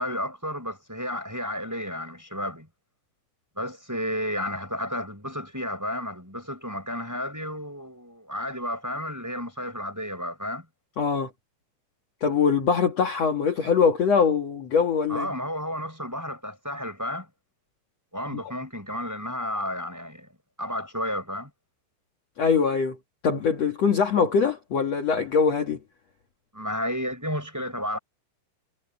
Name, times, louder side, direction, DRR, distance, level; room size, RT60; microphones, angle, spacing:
voice 1, 0.0-2.7 3.6-10.6 15.1-17.3 18.1-20.3 20.6-21.5 26.5-28.0, equal, 5° right, 4.7 m, -32 dB
voice 2, 11.0-11.3 12.2-15.3 18.3-18.4 22.4-23.0 23.2-25.8, left 6 dB, 55° left, 1.9 m, -23 dB
omnidirectional pair, 5.8 m